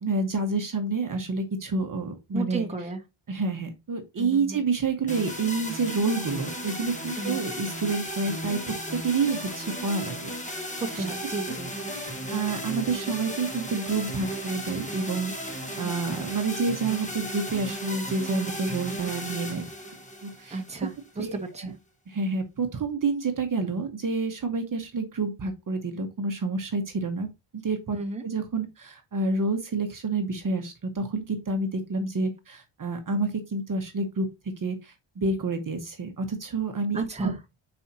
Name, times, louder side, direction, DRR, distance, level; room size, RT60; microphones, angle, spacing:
voice 1, 0.0-2.7 3.3-10.3 10.9-11.0 11.9-19.7 20.2-20.6 21.2-21.7 22.1-27.3 27.5-28.0 28.2-34.3 34.6-37.3, right 3 dB, 40° right, 1.0 m, -29 dB
voice 2, 2.3-3.0 4.2-4.6 7.1-7.4 10.8-11.7 20.5-21.7 27.9-28.2 36.9-37.4, right 3 dB, 15° right, 1.1 m, -33 dB
sound 1, 5.1-21.1, equal, 15° left, 1.4 m, -35 dB
9.7 x 4.3 x 2.8 m
wide cardioid pair, 175°, 49 cm